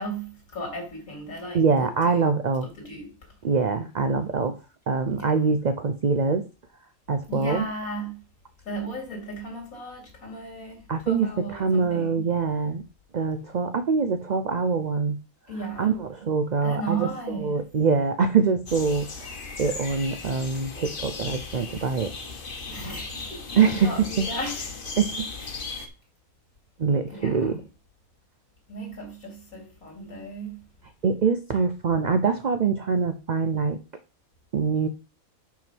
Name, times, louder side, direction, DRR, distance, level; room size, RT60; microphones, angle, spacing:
voice 1, 0.0-2.3 2.8-3.1 5.1-5.3 7.3-8.2 8.6-12.3 15.5-16.0 16.6-17.5 22.7-24.8 25.4-25.5 27.1-27.6 28.7-30.6, right 2 dB, 85° left, 3.0 m, -35 dB
voice 2, 1.5-2.7 3.4-4.6 4.9-6.5 7.1-7.7 10.9-12.8 13.1-15.2 15.8-17.1 17.4-22.1 23.6-24.3 25.0-25.3 26.8-27.6 31.0-33.8 34.5-34.9, right 5 dB, 85° right, 0.3 m, -24 dB
sound 1, 18.7-25.9, left 4 dB, 40° left, 1.1 m, -36 dB
5.8 x 4.4 x 6.1 m
omnidirectional pair, 1.5 m